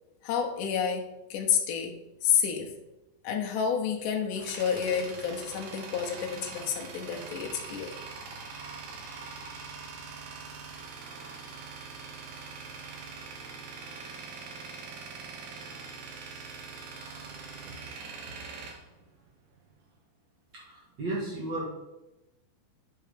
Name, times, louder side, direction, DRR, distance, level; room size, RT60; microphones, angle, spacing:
voice 1, 0.2-2.0 2.2-2.7 3.2-7.9, left 7 dB, 75° left, 1 dB, 1.9 m, -29 dB
Tools, 3.9-19.7, right 4 dB, 65° right, 2.4 m, -43 dB
voice 2, 20.5-21.6, right 2 dB, 50° right, -5 dB, 1.3 m, -34 dB
10.0 x 4.5 x 5.0 m, 0.98 s
omnidirectional pair, 5.0 m